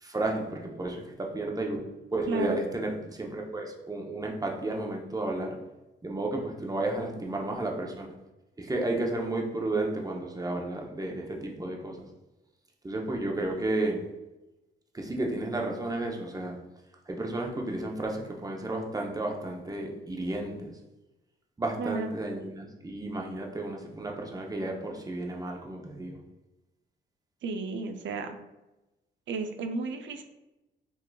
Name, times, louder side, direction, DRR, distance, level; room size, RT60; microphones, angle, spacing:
voice 1, 0.0-1.8 2.1-5.6 6.0-8.1 8.6-12.1 12.8-14.0 14.9-16.6 17.1-20.7 21.6-26.2, right 2 dB, 20° right, 1 dB, 0.7 m, -32 dB
voice 2, 2.3-2.6 7.2-7.3 21.8-22.1 27.4-28.4 29.3-30.2, right 4 dB, 70° right, 7 dB, 0.5 m, -33 dB
4.5 x 3.0 x 2.3 m, 0.99 s
cardioid pair, 70°, 20 cm